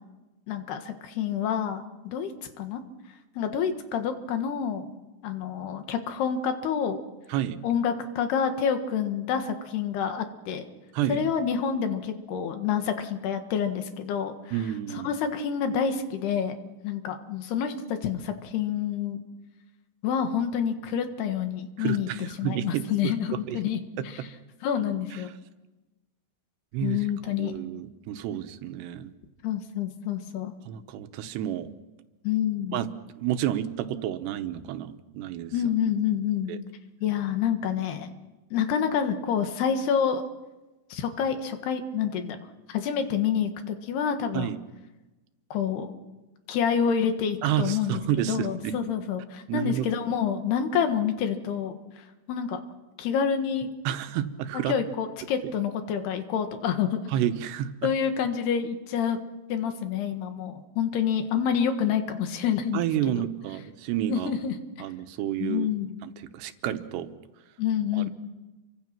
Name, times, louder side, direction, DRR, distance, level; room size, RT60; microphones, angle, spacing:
voice 1, 0.5-2.3 2.6-2.8 3.4-4.9 5.2-7.0 7.6-10.7 11.1-14.6 14.9-16.6 16.8-19.2 20.0-24.3 24.6-25.3 26.8-27.5 29.4-30.6 32.2-32.8 35.5-36.5 37.0-38.1 38.5-40.2 40.9-42.4 42.7-44.5 45.5-45.9 46.5-48.0 48.3-51.7 52.3-52.6 53.0-53.7 54.7-57.0 57.8-59.2 59.5-62.8 63.1-63.2 64.1-64.6 65.4-66.0 67.6-68.1, left 8 dB, 75° left, 7 dB, 3.6 m, -28 dB
voice 2, 14.5-15.1 21.8-23.6 24.0-24.1 25.1-25.2 26.7-27.0 27.4-29.1 30.7-31.7 32.7-32.9 33.2-35.5 36.5-36.6 44.3-44.6 47.4-48.7 49.5-49.9 53.8-54.8 57.1-57.9 62.7-64.3 64.8-65.7 66.0-67.1 68.0-68.1, right 11 dB, 85° right, 10 dB, 3.2 m, -30 dB
29.5 x 24.0 x 6.0 m, 1.1 s
omnidirectional pair, 4.8 m